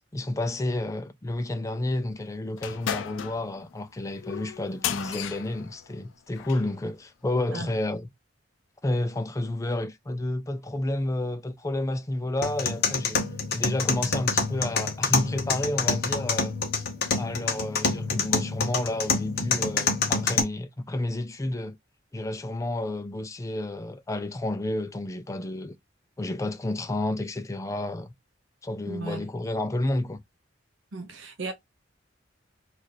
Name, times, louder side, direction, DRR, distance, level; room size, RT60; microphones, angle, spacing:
voice 1, 0.1-8.1 8.8-13.2 13.5-16.5 17.1-21.8 22.1-25.8 26.2-28.1 28.6-30.2, left 1 dB, 15° left, 0.4 m, -30 dB
sound 1, 2.6-6.7, left 9 dB, 80° left, 0.4 m, -35 dB
sound 2, 12.4-20.4, left 4 dB, 55° left, 0.9 m, -27 dB
voice 2, 28.9-29.2 30.9-31.5, right 3 dB, 80° right, 0.7 m, -35 dB
3.2 x 2.5 x 4.0 m
head